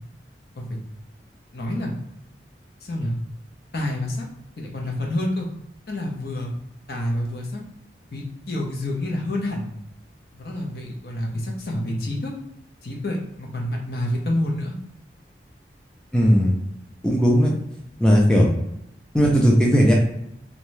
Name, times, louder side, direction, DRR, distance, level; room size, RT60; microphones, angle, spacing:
voice 1, 1.5-1.9 2.8-3.2 3.7-4.3 4.6-5.5 5.9-6.5 6.9-7.6 8.1-9.7 10.3-12.3 12.8-14.8, left 1 dB, 60° left, -1 dB, 0.7 m, -28 dB
voice 2, 16.1-16.6 17.0-17.5 18.0-18.5 19.1-19.9, equal, 5° left, -3 dB, 0.4 m, -16 dB
2.6 x 2.2 x 3.1 m, 0.79 s
head